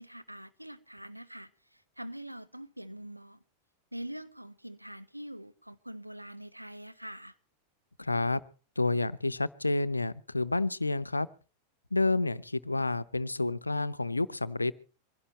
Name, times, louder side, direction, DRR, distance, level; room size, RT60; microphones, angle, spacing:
voice 1, 0.0-3.4 3.9-7.4, right 1 dB, 90° right, 1.1 m, -44 dB
voice 2, 8.0-8.4 8.8-11.3 11.9-14.7, left 2 dB, 85° left, 0.6 m, -29 dB
24.0 x 16.5 x 3.1 m
figure-of-eight pair, 90°, 0 cm